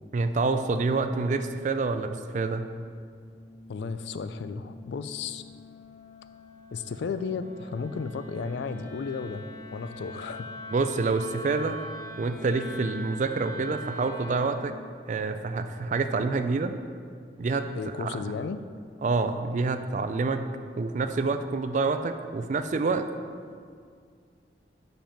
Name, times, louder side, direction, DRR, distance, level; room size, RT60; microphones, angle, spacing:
voice 1, 0.1-2.7 10.7-11.8 12.2-14.7 15.1-16.7 17.4-17.7 18.0-18.2 19.0-20.5 20.8-23.0, right 3 dB, 40° right, 9 dB, 0.3 m, -27 dB
Wind instrument woodwind instrument, 3.1-14.6, equal, 20° left, 0.9 m, -43 dB
voice 2, 3.7-5.4 6.7-10.5 17.8-18.6, left 5 dB, 70° left, 12 dB, 0.3 m, -34 dB
5.2 x 5.1 x 5.8 m, 2.1 s
head